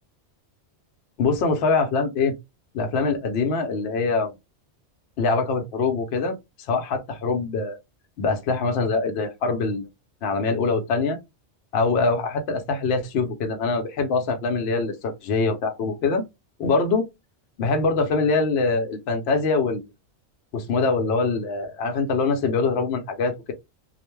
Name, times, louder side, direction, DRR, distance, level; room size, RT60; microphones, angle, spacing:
voice 1, 1.2-2.3 2.7-4.3 5.2-6.4 6.7-7.8 8.2-9.9 10.2-11.2 11.7-16.2 16.6-17.0 17.6-19.8 20.5-23.5, left 4 dB, 65° left, 0.8 m, -23 dB
2.4 x 2.1 x 3.0 m
omnidirectional pair, 1.2 m